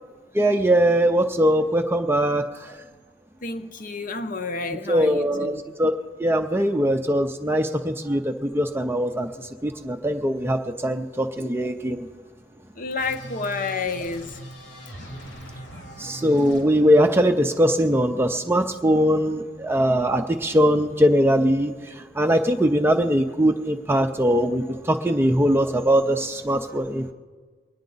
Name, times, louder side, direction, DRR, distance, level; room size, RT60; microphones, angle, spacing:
voice 1, 0.3-2.4 4.9-5.5 5.8-5.9 6.2-9.3 9.6-12.1 16.0-21.7 22.2-27.1, equal, 10° right, 5 dB, 0.5 m, -21 dB
voice 2, 3.4-5.8 12.7-14.4, left 4 dB, 45° left, 9 dB, 0.8 m, -30 dB
sound 1, 13.0-16.6, right 1 dB, 90° left, 3.5 m, -40 dB
23.5 x 9.5 x 4.0 m, 1.5 s
head